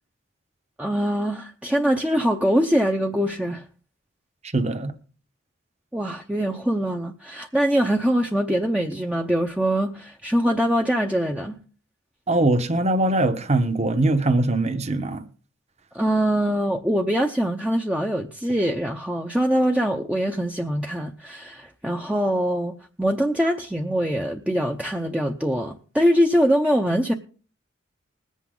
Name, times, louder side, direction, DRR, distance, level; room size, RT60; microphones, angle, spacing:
voice 1, 0.8-3.6 5.9-11.6 15.9-27.1, equal, 5° right, 0.7 m, -23 dB
voice 2, 4.5-4.9 12.3-15.2, right 2 dB, 35° right, 1.1 m, -21 dB
20.5 x 8.3 x 3.8 m
head